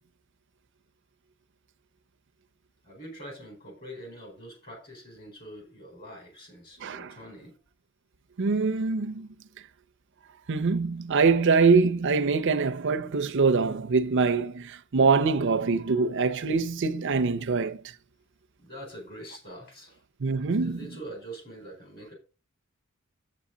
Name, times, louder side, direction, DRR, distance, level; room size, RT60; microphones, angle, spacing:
voice 1, 2.8-7.5 18.6-20.0 20.6-22.1, right 1 dB, 45° left, 4.3 m, -44 dB
voice 2, 6.8-7.1 8.4-9.3 10.5-17.8 20.2-20.8, right 4 dB, 55° right, 0.6 m, -24 dB
8.4 x 7.9 x 3.8 m
head